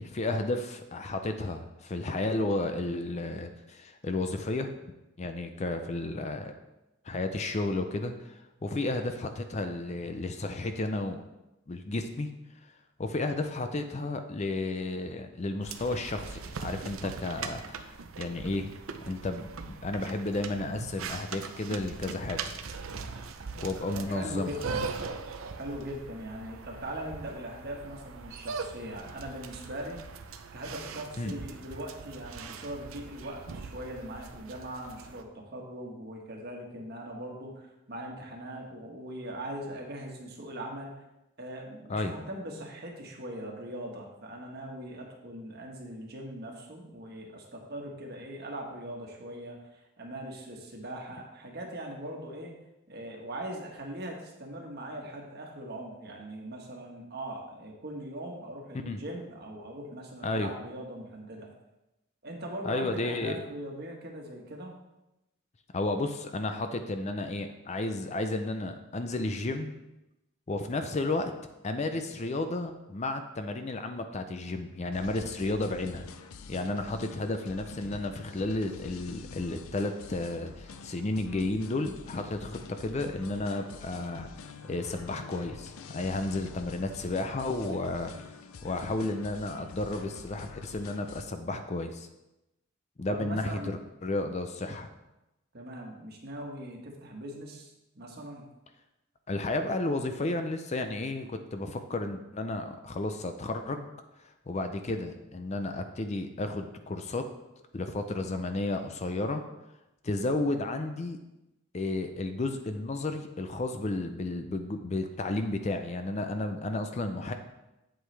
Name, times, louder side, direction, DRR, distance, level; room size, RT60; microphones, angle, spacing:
voice 1, 0.0-4.7 5.2-6.5 7.0-11.2 11.7-12.3 12.6-12.7 13.0-18.7 19.0-22.5 23.6-24.5 31.2-31.3 41.9-42.1 58.9-59.0 60.2-60.5 62.6-63.4 65.7-69.7 70.5-71.3 71.6-76.1 76.5-88.3 88.6-92.1 93.0-94.9 99.3-103.9 104.5-107.2 107.7-109.4 110.0-111.2 111.7-117.3, left 2 dB, 30° left, 7 dB, 0.5 m, -32 dB
sound 1, 15.6-35.2, right 5 dB, 75° right, 0.6 m, -41 dB
voice 2, 23.9-24.9 25.6-30.0 30.5-40.9 41.4-52.5 52.9-61.5 62.2-64.7 93.1-93.7 95.5-98.4, right 1 dB, 50° right, 0 dB, 1.4 m, -40 dB
sound 2, 74.9-91.2, left 4 dB, 80° left, 0.5 m, -47 dB
8.3 x 7.8 x 3.3 m, 0.95 s
head